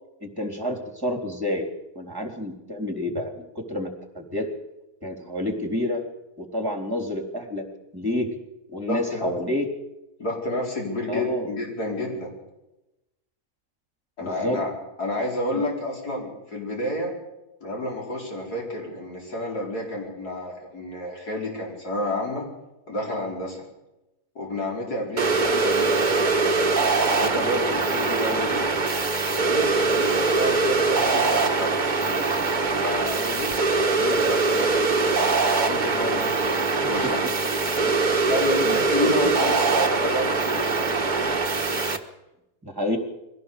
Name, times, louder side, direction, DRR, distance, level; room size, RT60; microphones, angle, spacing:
voice 1, 0.2-1.7 2.0-4.5 5.0-6.0 6.4-7.7 7.9-8.4 8.7-9.7 11.1-11.5 14.2-14.6 15.5-15.6 37.0-37.1 37.8-37.9 38.6-39.3 42.6-43.0, left 1 dB, 15° right, 4 dB, 3.5 m, -29 dB
voice 2, 8.8-9.3 10.2-12.3 14.2-14.7 15.0-17.1 17.6-22.4 22.9-23.6 24.4-26.6 27.2-28.9 29.3-31.8 32.8-33.7 34.0-35.3 35.7-37.2 38.2-40.9, left 1 dB, 80° left, -1 dB, 5.3 m, -30 dB
sound 1, 25.2-42.0, right 3 dB, 30° right, 1.4 m, -22 dB
23.0 x 17.0 x 6.9 m, 0.94 s
omnidirectional pair, 1.6 m